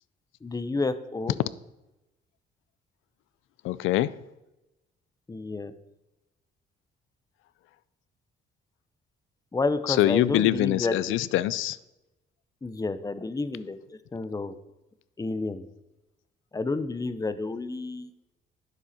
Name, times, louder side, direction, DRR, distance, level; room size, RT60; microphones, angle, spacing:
voice 1, 0.4-1.4 5.3-5.7 9.5-11.2 12.6-13.8 14.1-14.5 15.2-15.7 16.5-18.1, left 3 dB, 20° left, 12 dB, 0.7 m, -30 dB
voice 2, 3.6-4.1 9.9-11.8, left 14 dB, 85° left, 18 dB, 0.4 m, -24 dB
10.0 x 7.0 x 4.3 m, 0.97 s
cardioid pair, 90°, 20 cm